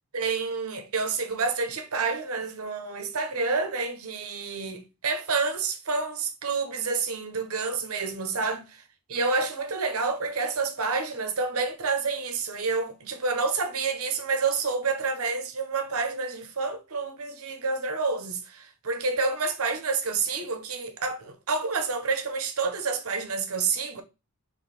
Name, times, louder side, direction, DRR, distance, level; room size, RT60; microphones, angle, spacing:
voice 1, 0.1-8.6 9.1-24.0, right 4 dB, 65° right, 0.9 m, -28 dB
4.3 x 3.3 x 3.4 m
head